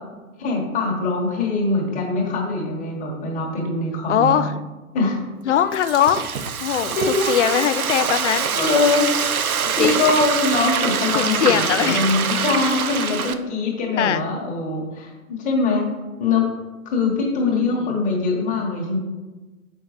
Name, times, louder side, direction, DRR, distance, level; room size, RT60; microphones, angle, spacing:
voice 1, 0.4-4.5 4.9-5.2 6.7-7.4 8.5-9.1 9.7-15.9 16.2-16.5 16.8-19.0, left 3 dB, 20° left, -2 dB, 1.4 m, -22 dB
voice 2, 4.1-4.6 5.5-6.2 6.6-8.6 9.6-10.0 11.1-12.0 14.0-14.2 17.6-18.0, left 10 dB, 55° left, 13 dB, 0.5 m, -21 dB
Frying (food), 5.5-13.3, right 7 dB, 80° right, 0.6 m, -24 dB
7.5 x 5.4 x 3.1 m, 1.2 s
figure-of-eight pair, 115°, 43 cm